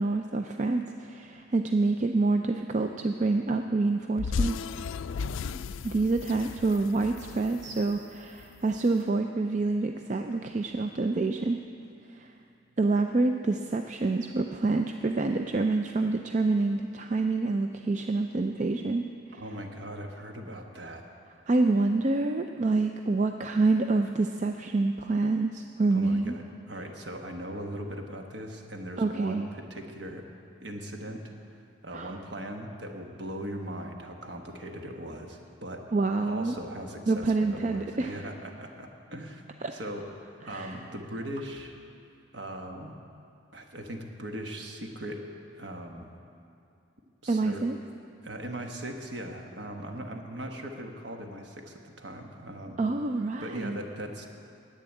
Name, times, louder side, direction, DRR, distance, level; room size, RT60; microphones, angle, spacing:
voice 1, 0.0-4.6 5.8-11.6 12.2-12.3 12.8-19.0 19.3-19.4 21.5-26.3 29.0-29.5 31.9-32.1 35.9-36.6 37.1-38.2 40.5-40.7 47.3-47.8 52.8-53.8, right 3 dB, 35° right, 5 dB, 0.4 m, -27 dB
sound 1, 4.2-8.6, left 5 dB, 75° left, 0.3 m, -35 dB
voice 2, 19.4-21.0 25.9-30.3 30.6-31.2 31.8-35.9 36.2-39.4 39.7-41.7 42.3-43.0 43.5-45.2 45.5-46.1 47.2-47.7 48.2-52.8 53.4-54.3, right 1 dB, 60° right, 3 dB, 1.3 m, -39 dB
10.5 x 8.6 x 9.0 m, 2.6 s
head